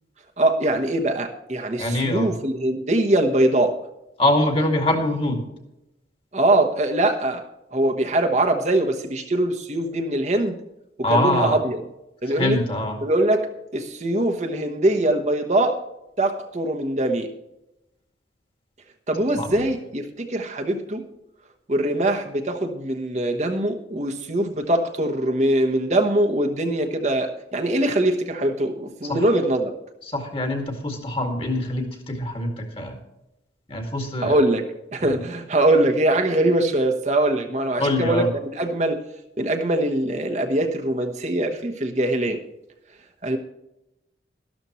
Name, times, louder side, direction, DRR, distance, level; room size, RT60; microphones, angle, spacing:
voice 1, 0.4-3.8 6.3-7.4 7.7-10.6 11.1-11.8 12.2-12.6 13.0-13.5 13.7-15.8 16.2-17.3 19.1-21.0 21.7-29.8 34.2-34.6 34.9-39.0 39.4-42.4 43.2-43.4, right 1 dB, 40° right, 3 dB, 1.1 m, -22 dB
voice 2, 1.8-2.3 4.2-5.4 11.0-11.6 12.3-13.0 19.3-19.6 29.1-29.2 30.1-33.0 33.7-34.4 35.0-35.2 37.8-38.3, left 1 dB, 30° left, 4 dB, 2.1 m, -24 dB
13.0 x 12.5 x 3.1 m, 0.90 s
head